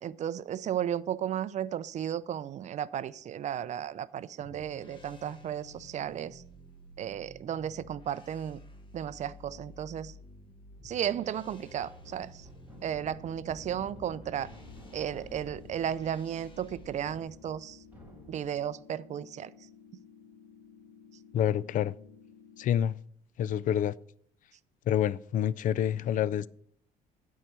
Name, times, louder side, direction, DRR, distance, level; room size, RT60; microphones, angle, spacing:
voice 1, 0.0-6.4 7.0-8.6 8.9-10.1 10.8-12.5 12.8-14.5 14.9-17.8 18.3-19.5, right 10 dB, 45° right, 0.4 m, -34 dB
sound 1, 4.4-17.2, equal, 30° left, 1.3 m, -52 dB
sound 2, 11.0-18.7, left 1 dB, 10° right, 2.6 m, -53 dB
sound 3, 12.7-22.7, left 6 dB, 70° left, 1.5 m, -55 dB
voice 2, 21.3-21.9 22.6-22.9 23.4-23.9 24.9-26.5, left 10 dB, 50° left, 0.4 m, -27 dB
9.0 x 4.7 x 6.6 m
cardioid pair, 110°, 17 cm